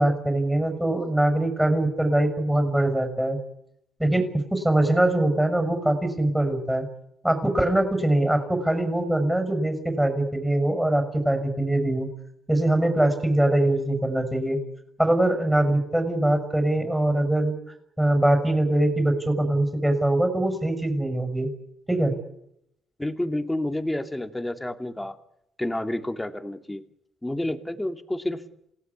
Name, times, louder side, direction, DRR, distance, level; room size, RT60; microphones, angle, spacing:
voice 1, 0.0-3.4 4.0-6.8 7.2-12.1 12.5-14.6 15.0-17.5 18.0-21.5 21.9-22.1, right 1 dB, 5° right, 5 dB, 6.3 m, -22 dB
voice 2, 23.0-25.2 25.6-26.8 27.2-28.4, left 1 dB, 10° left, 8 dB, 2.6 m, -29 dB
28.0 x 17.5 x 9.8 m, 0.79 s
cardioid pair, 90°, 0 cm